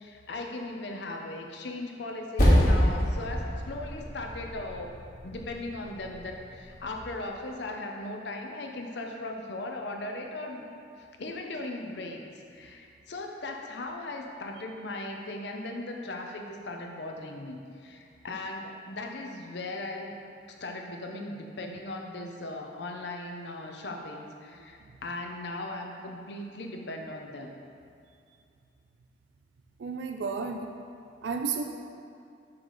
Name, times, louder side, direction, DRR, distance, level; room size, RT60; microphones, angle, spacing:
voice 1, 0.0-4.9 5.2-10.6 11.0-12.2 12.5-20.2 20.6-27.5, left 2 dB, 65° left, 2 dB, 0.6 m, -38 dB
Percussion, 2.4-7.2, equal, 45° left, 1.4 m, -27 dB
voice 2, 29.8-30.7 31.2-31.6, right 5 dB, 70° right, 4 dB, 0.4 m, -32 dB
5.9 x 3.9 x 4.7 m, 2.5 s
head